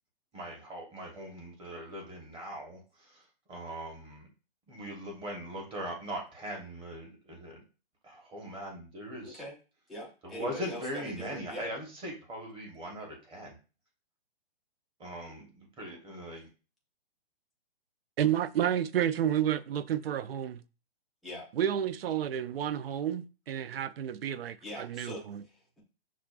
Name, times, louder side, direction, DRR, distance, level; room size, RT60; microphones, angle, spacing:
voice 1, 0.3-4.3 4.7-7.6 8.0-9.4 10.2-13.5 15.0-16.5, equal, 15° right, 1.1 m, -41 dB
voice 2, 9.2-9.6 9.9-11.7 21.2-21.5 24.6-25.8, left 1 dB, ahead, 0.3 m, -42 dB
voice 3, 18.2-20.6 21.5-25.4, right 10 dB, 75° right, 0.5 m, -30 dB
6.0 x 2.4 x 2.4 m
hypercardioid pair, 140°, 30 cm